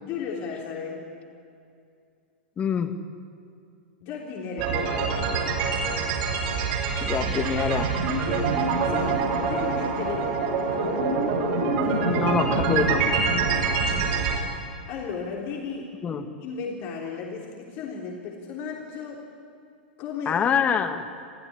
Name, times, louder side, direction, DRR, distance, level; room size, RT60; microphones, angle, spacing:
voice 1, 0.0-1.1 4.0-5.6 8.8-10.4 10.7-11.4 11.9-12.4 14.9-16.0 16.4-19.2 20.0-20.4, left 6 dB, 40° left, -2 dB, 3.5 m, -35 dB
voice 2, 2.6-3.0 7.0-7.9 12.1-13.3 16.0-16.2 20.3-21.1, left 7 dB, 25° left, 8 dB, 1.8 m, -25 dB
sound 1, 4.6-14.4, right 4 dB, 50° right, 6.2 m, -25 dB
26.5 x 16.0 x 9.8 m, 2.4 s
figure-of-eight pair, 95°, 6 cm